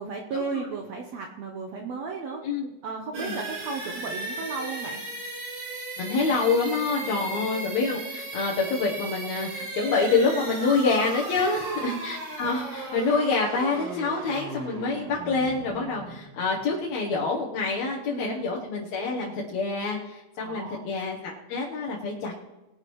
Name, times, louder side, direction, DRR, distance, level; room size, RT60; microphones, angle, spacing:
voice 1, 0.0-2.4 2.8-5.0 7.0-7.3 11.3-12.0 18.1-18.5 20.4-20.8 21.1-21.2, right 4 dB, 70° right, 2 dB, 1.7 m, -34 dB
sound 1, 3.1-16.8, right 2 dB, 45° right, 3.1 m, -37 dB
voice 2, 6.0-22.4, left 4 dB, 65° left, -4 dB, 2.2 m, -27 dB
20.5 x 10.5 x 3.1 m, 1.0 s
omnidirectional pair, 4.0 m